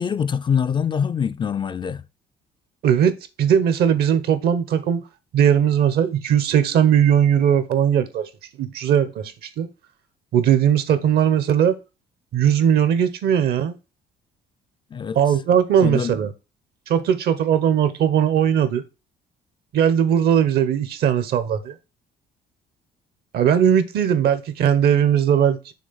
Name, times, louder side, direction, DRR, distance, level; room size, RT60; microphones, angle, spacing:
voice 1, 0.0-2.0 14.9-15.2 15.8-16.1, left 7 dB, 30° left, 0.4 m, -24 dB
voice 2, 2.8-5.0 5.3-8.3 8.6-9.7 10.3-11.8 12.3-13.7 15.1-16.3 16.9-18.8 19.7-21.7 23.3-25.7, right 9 dB, 70° right, 1.0 m, -19 dB
6.4 x 3.4 x 5.5 m
cardioid pair, 110°, 17 cm